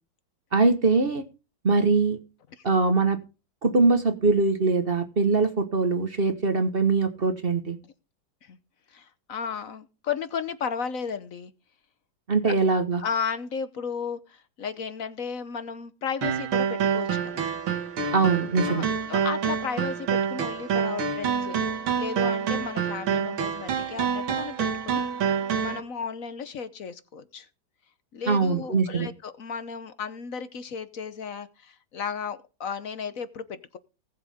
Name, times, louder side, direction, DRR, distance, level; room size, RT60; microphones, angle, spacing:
voice 1, 0.5-1.2 1.6-2.2 2.6-3.2 3.6-7.8 12.3-13.0 18.1-18.9 28.3-29.1, right 3 dB, 35° right, 9 dB, 1.2 m, -22 dB
voice 2, 8.9-11.5 12.5-12.6 13.0-17.5 18.7-21.6 22.0-25.0 25.6-27.5 28.1-33.8, left 6 dB, 55° left, 13 dB, 1.1 m, -34 dB
sound 1, 16.2-25.8, right 7 dB, 85° right, 2.2 m, -27 dB
19.5 x 7.5 x 3.6 m, 0.32 s
omnidirectional pair, 2.2 m